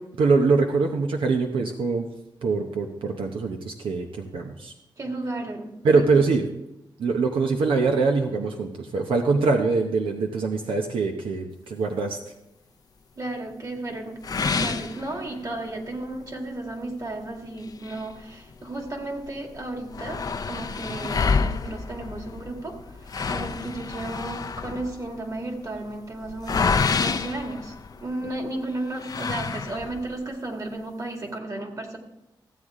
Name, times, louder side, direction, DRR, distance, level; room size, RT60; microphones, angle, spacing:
voice 1, 0.2-2.1 2.4-4.7 5.8-6.4 7.0-12.2 21.0-21.2, right 4 dB, 85° right, 3 dB, 0.8 m, -23 dB
voice 2, 5.0-6.0 13.2-27.7 28.0-32.0, right 2 dB, 40° right, 3 dB, 2.1 m, -34 dB
sound 1, 14.2-15.7 16.1-16.2 16.7-16.8 17.6-18.9 19.2-19.3 19.5-28.3 29.0-30.1, left 5 dB, 45° left, 0.5 m, -28 dB
15.0 x 8.1 x 3.7 m, 0.90 s
cardioid pair, 80°, 9 cm